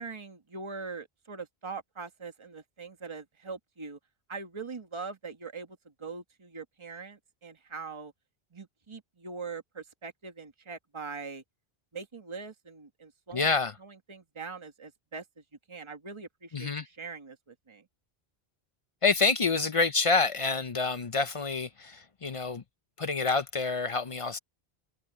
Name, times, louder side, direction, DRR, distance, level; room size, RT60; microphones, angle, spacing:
voice 1, 0.0-4.0 4.3-8.1 8.5-11.4 11.9-13.5 13.8-15.2 15.7-17.8, right 4 dB, 30° right, 1.5 m, -42 dB
voice 2, 13.3-13.8 16.5-16.9 19.0-22.6 23.0-24.4, left 4 dB, 40° left, 0.6 m, -27 dB
omnidirectional pair, 1.1 m